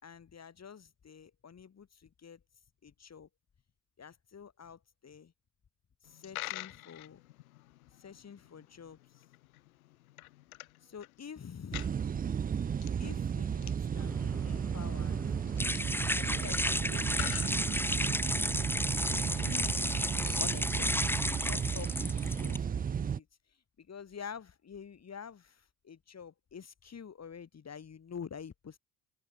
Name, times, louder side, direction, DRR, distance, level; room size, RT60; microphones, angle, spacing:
voice 1, 0.0-2.4 2.8-3.3 4.0-5.3 6.0-7.2 8.0-9.2 10.8-11.9 13.0-15.2 16.1-18.2 19.0-20.1 20.4-22.1 22.4-28.8, left 7 dB, 35° left, 5.2 m, -48 dB
Coin (dropping), 6.0-18.3, left 18 dB, 80° left, 4.8 m, -48 dB
sound 1, 11.7-23.2, right 7 dB, 20° right, 0.5 m, -34 dB
sound 2, 14.0-22.6, left 1 dB, 5° left, 2.5 m, -33 dB
open air
hypercardioid pair, 60°, 42 cm